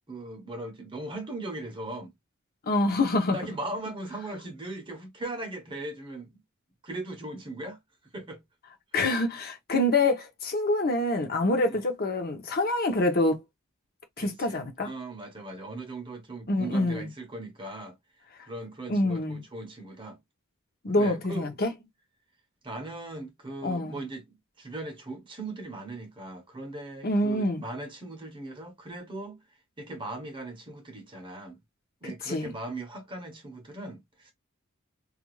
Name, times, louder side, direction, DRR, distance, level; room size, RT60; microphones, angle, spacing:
voice 1, 0.1-2.1 3.3-6.4 6.8-7.8 8.1-8.4 11.7-11.8 14.2-18.0 18.4-20.2 20.9-21.5 22.6-29.4 29.8-31.6 32.0-34.3, right 2 dB, 20° right, 0.7 m, -39 dB
voice 2, 2.7-3.4 8.9-13.4 14.2-14.9 16.5-17.1 18.9-19.4 20.8-21.7 23.6-24.0 27.0-27.6 32.2-32.5, left 2 dB, 45° left, 0.7 m, -26 dB
2.4 x 2.3 x 3.0 m
head